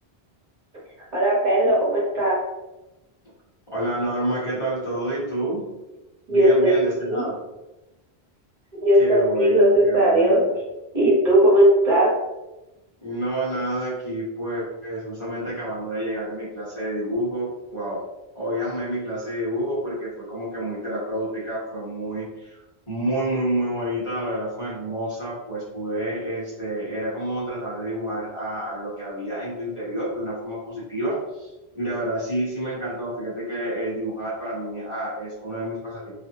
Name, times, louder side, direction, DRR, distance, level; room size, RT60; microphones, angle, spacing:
voice 1, 1.1-2.4 6.3-7.2 8.8-10.4 10.9-12.1, right 1 dB, 45° right, -8 dB, 1.0 m, -18 dB
voice 2, 3.7-5.6 6.3-7.4 9.0-10.5 13.0-18.0 18.3-22.6 22.9-36.1, right 1 dB, 35° left, -9 dB, 0.8 m, -29 dB
2.4 x 2.0 x 2.8 m, 1.0 s
omnidirectional pair, 1.0 m